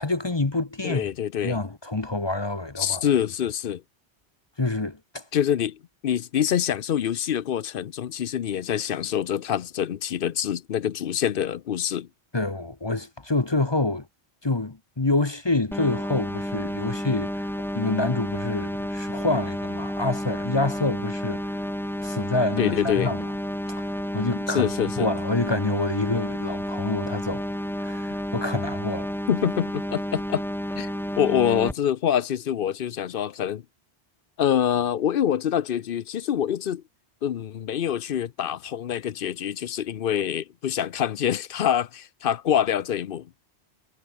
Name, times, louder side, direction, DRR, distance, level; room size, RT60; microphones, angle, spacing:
voice 1, 0.0-1.1 1.4-3.0 4.6-5.2 12.3-14.1 14.4-21.6 22.0-23.2 23.7-24.7 25.0-27.4 27.8-29.2, left 2 dB, 25° left, 1.0 m, -27 dB
voice 2, 0.8-1.6 2.8-3.8 5.3-12.1 22.6-23.1 24.5-25.1 29.3-30.4 30.8-30.9 31.2-33.6 34.4-36.8 37.2-43.3, left 9 dB, 60° left, 0.8 m, -25 dB
sound 1, 15.7-31.7, equal, ahead, 1.1 m, -31 dB
omnidirectional pair, 1.1 m